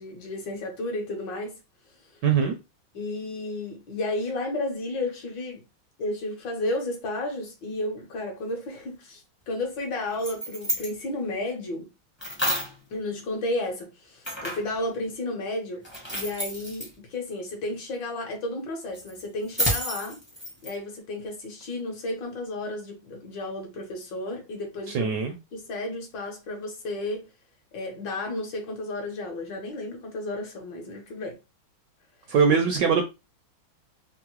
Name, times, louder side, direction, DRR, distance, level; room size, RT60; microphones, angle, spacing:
voice 1, 0.0-1.6 2.9-5.6 6.0-11.9 12.9-15.8 16.1-20.2 20.6-25.2 25.5-27.3 27.7-31.4, left 2 dB, 65° left, 1.4 m, -32 dB
voice 2, 2.2-2.6 24.9-25.3 32.3-33.0, right 6 dB, 75° right, 1.0 m, -22 dB
sound 1, 10.0-10.9 12.2-12.8 14.2-14.7 15.8-16.9 18.9-20.7, equal, 10° left, 0.5 m, -30 dB
3.6 x 2.0 x 2.9 m
omnidirectional pair, 2.3 m